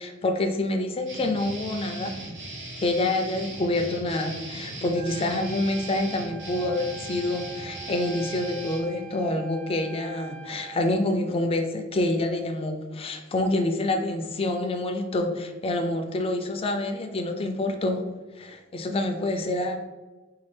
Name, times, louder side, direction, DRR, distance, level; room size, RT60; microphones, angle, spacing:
voice 1, 0.0-2.1 2.8-18.0 18.4-19.8, left 2 dB, 30° left, 5 dB, 0.4 m, -27 dB
sound 1, 1.1-8.8, right 2 dB, 60° right, 0.8 m, -38 dB
Wind instrument woodwind instrument, 4.9-10.9, right 6 dB, 20° right, 0.6 m, -43 dB
4.2 x 2.3 x 3.2 m, 1.2 s
head